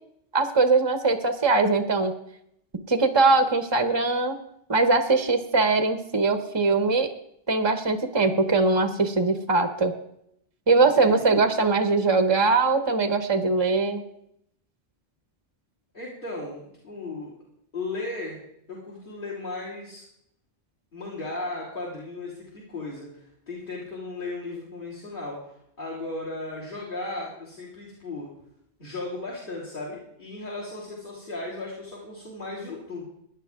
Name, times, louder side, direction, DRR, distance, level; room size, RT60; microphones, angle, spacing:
voice 1, 0.3-2.1 2.9-4.4 4.7-7.1 7.5-9.9 10.7-14.0, right 3 dB, 25° right, 7 dB, 0.9 m, -21 dB
voice 2, 10.9-11.3 15.9-17.3 17.7-18.4 18.7-20.0 20.9-28.3 28.8-33.0, left 2 dB, 50° left, -6 dB, 3.6 m, -36 dB
17.0 x 10.5 x 3.7 m, 0.74 s
omnidirectional pair, 1.1 m